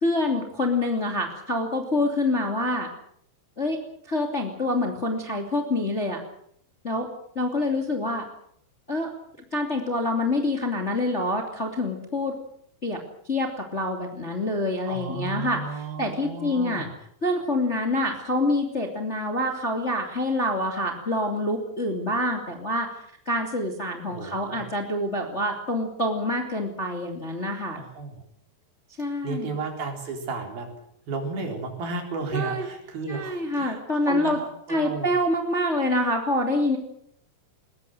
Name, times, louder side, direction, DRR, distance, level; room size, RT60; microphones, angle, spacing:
voice 1, 0.0-2.9 3.6-3.8 4.1-6.2 6.8-7.1 7.3-8.2 8.9-9.1 9.5-12.3 12.8-13.0 13.3-15.6 16.0-16.9 17.2-23.0 23.3-27.8 29.0-29.5 32.3-32.6 33.1-34.4 34.7-36.8, left 1 dB, 20° left, 3 dB, 2.3 m, -26 dB
voice 2, 14.9-16.9 24.0-24.6 27.7-28.2 28.9-30.7 31.1-35.1, right 4 dB, 60° right, 3 dB, 5.8 m, -33 dB
21.5 x 20.5 x 7.8 m, 0.68 s
omnidirectional pair, 4.9 m